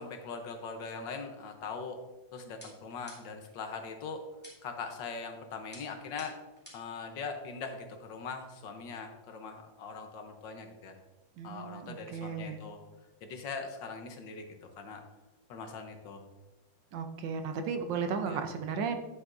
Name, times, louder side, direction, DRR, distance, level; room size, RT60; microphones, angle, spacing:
voice 1, 0.0-2.0 2.3-4.2 4.6-6.4 6.7-11.0 11.4-12.8 13.2-15.0 15.5-16.2 18.3-18.4, left 4 dB, 70° left, 5 dB, 1.6 m, -41 dB
sound 1, 2.6-3.5 4.4-4.9 5.7-7.0, left 1 dB, 5° left, 2.2 m, -53 dB
voice 2, 11.4-12.6 16.9-19.0, right 5 dB, 70° right, 7 dB, 1.4 m, -35 dB
9.4 x 8.1 x 2.6 m, 1.1 s
omnidirectional pair, 2.2 m